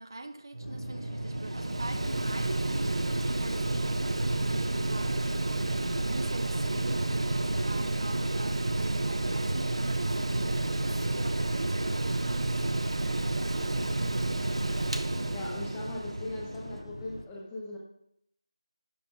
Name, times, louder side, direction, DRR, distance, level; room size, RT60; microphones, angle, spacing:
voice 1, 0.0-14.3, right 2 dB, 45° right, 0.6 m, -44 dB
Mechanical fan, 0.5-16.8, right 2 dB, 75° right, 0.8 m, -30 dB
sound 1, 0.6-17.2, left 1 dB, 75° left, 1.8 m, -43 dB
voice 2, 15.3-17.8, left 1 dB, 5° left, 0.8 m, -39 dB
11.5 x 4.3 x 5.8 m
figure-of-eight pair, 180°, 3 cm